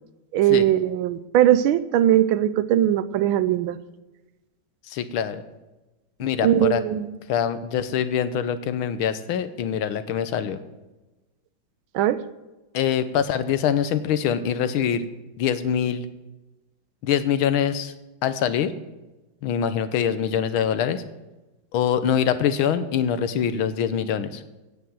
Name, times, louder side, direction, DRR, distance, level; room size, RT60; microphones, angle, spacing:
voice 1, 0.3-3.8 6.4-7.1 11.9-12.2, right 11 dB, 80° right, 15 dB, 1.4 m, -20 dB
voice 2, 4.9-5.4 6.2-6.8 7.3-10.6 12.7-15.0 15.4-16.1 17.0-17.9 18.2-18.7 19.4-21.0 21.7-24.4, left 8 dB, 85° left, 12 dB, 1.7 m, -24 dB
16.5 x 5.9 x 7.5 m, 1.1 s
omnidirectional pair, 2.2 m